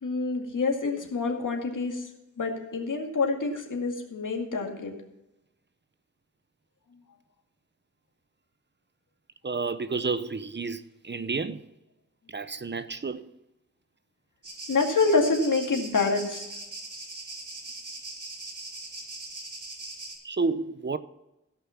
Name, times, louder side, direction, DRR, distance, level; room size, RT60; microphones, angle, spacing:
voice 1, 0.0-2.1 2.4-4.9 14.7-16.4, left 3 dB, 80° left, 2.2 m, -27 dB
voice 2, 9.4-11.6 12.3-13.2 20.2-21.0, right 4 dB, 35° right, 0.7 m, -30 dB
sound 1, 14.4-20.1, right 2 dB, 75° right, 3.6 m, -40 dB
16.5 x 5.9 x 5.7 m
wide cardioid pair, 65°, 31 cm